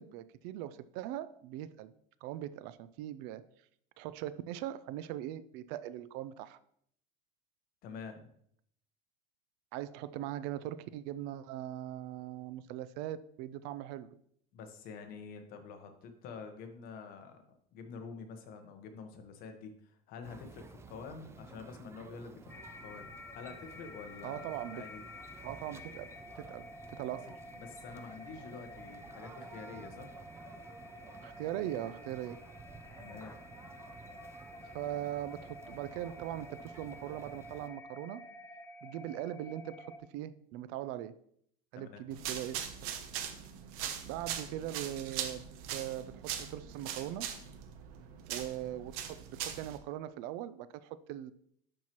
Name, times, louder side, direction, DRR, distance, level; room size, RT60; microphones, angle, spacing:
voice 1, 0.0-1.9 2.2-3.5 4.0-6.6 9.7-14.1 24.2-24.9 25.4-27.4 31.2-32.4 34.7-38.2 38.8-41.1 41.7-43.0 44.0-45.4 45.7-47.3 48.3-51.3, right 12 dB, 70° right, 15 dB, 0.5 m, -40 dB
voice 2, 7.8-8.3 14.5-17.4 17.7-23.1 23.3-25.0 27.6-30.1 33.0-33.3 41.7-42.1, left 5 dB, 55° left, 5 dB, 1.2 m, -47 dB
sound 1, 20.2-37.7, right 4 dB, 15° right, 0.4 m, -53 dB
sound 2, 22.5-40.0, left 2 dB, 10° left, 0.9 m, -50 dB
sound 3, 42.1-49.8, right 9 dB, 90° right, 0.9 m, -41 dB
11.5 x 4.5 x 3.0 m, 0.67 s
cardioid pair, 145°, 18 cm